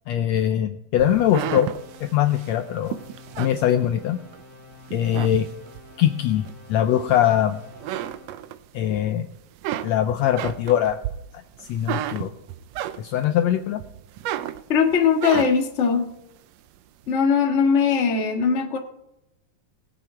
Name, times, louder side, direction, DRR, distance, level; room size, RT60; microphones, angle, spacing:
voice 1, 0.1-1.7 2.0-3.0 3.4-4.2 4.9-5.5 6.0-7.6 8.7-9.3 9.8-11.0 11.7-12.3 13.0-13.8, left 11 dB, 80° left, 8 dB, 1.6 m, -22 dB
sound 1, 0.9-8.5, left 2 dB, 25° right, 4.7 m, -48 dB
sound 2, 1.0-4.4 4.8-5.9 6.4-7.4 7.7-9.0 9.3-13.4 13.8-15.8, right 12 dB, 85° right, 1.5 m, -32 dB
voice 2, 14.7-16.1 17.1-18.8, left 6 dB, 40° left, 2 dB, 1.1 m, -20 dB
20.0 x 7.8 x 4.4 m, 0.87 s
omnidirectional pair, 3.6 m